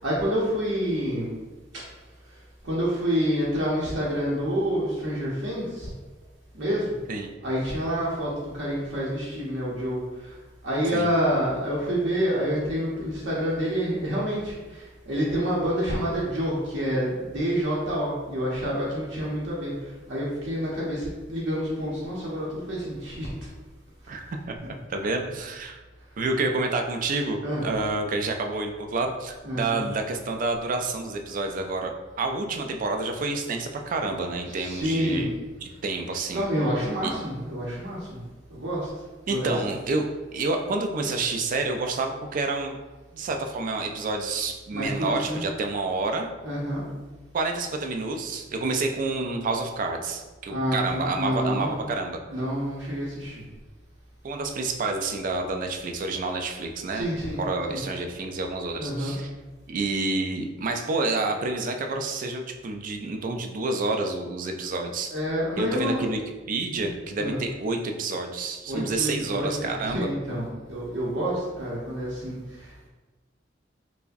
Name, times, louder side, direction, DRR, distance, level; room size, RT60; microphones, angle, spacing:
voice 1, 0.0-1.3 2.6-5.9 6.5-6.9 7.4-10.3 10.6-19.7 20.1-23.3 27.4-27.7 29.4-29.8 34.4-35.3 36.3-38.2 38.5-38.9 39.3-39.8 44.7-45.4 46.4-46.8 50.5-51.8 52.3-53.4 56.9-57.4 57.7-57.8 58.8-59.1 65.1-66.1 66.8-66.9 67.2-67.4 68.6-72.9, equal, 70° right, -6 dB, 0.7 m, -28 dB
voice 2, 24.1-25.8 26.2-35.3 35.6-36.5 37.0-37.1 39.3-42.8 43.1-46.3 47.3-52.2 54.2-57.1 57.4-59.3 59.7-65.1 65.6-66.2 66.5-70.1, right 3 dB, 45° right, 4 dB, 0.3 m, -29 dB
4.6 x 2.0 x 2.5 m, 1.2 s
head